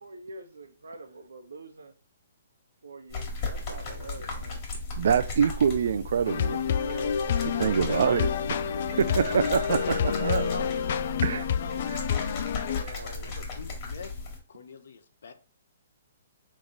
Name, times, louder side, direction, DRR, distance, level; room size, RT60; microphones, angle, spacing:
voice 1, 0.0-1.9 2.8-4.7 5.0-5.1 6.8-8.4 8.6-9.5 11.6-11.7 12.6-13.4, right 3 dB, 85° right, 0.8 m, -43 dB
sound 1, 3.1-14.4, left 3 dB, 35° left, 1.7 m, -36 dB
voice 2, 5.0-6.6 7.6-8.3 8.7-10.5 11.2-11.4, right 7 dB, 65° right, 0.4 m, -25 dB
sound 2, 6.3-12.8, left 8 dB, 55° left, 0.3 m, -28 dB
voice 3, 7.2-7.7 9.8-10.9 11.2-11.9 13.0-14.2 14.5-15.3, left 5 dB, 75° left, 0.7 m, -44 dB
3.6 x 3.2 x 3.9 m
hypercardioid pair, 145°, 0 cm